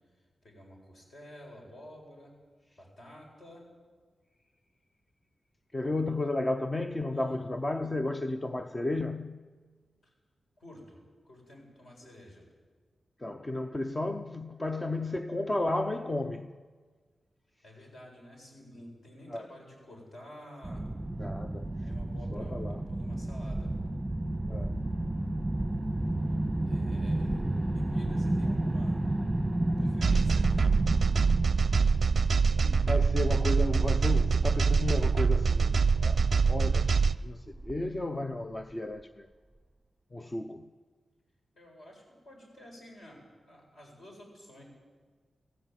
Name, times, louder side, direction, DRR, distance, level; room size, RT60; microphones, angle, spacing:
voice 1, 0.4-2.3 2.8-3.6 5.8-6.2 7.1-7.4 10.0-10.1 10.6-11.0 11.2-12.4 17.6-20.8 21.8-23.7 26.7-27.4 27.7-29.0 29.8-30.5 41.5-44.6, left 1 dB, 50° left, 7.7 m, -50 dB
voice 2, 5.7-9.4 13.2-16.6 19.3-19.5 21.2-21.9 22.3-22.8 24.5-24.8 31.9-32.0 32.5-39.3 40.1-40.7, left 2 dB, 20° left, 0.6 m, -33 dB
sound 1, 20.6-38.0, right 1 dB, 5° right, 1.4 m, -32 dB
sound 2, 30.0-37.2, right 5 dB, 35° right, 0.6 m, -24 dB
25.0 x 16.5 x 9.5 m
wide cardioid pair, 175°, 0 cm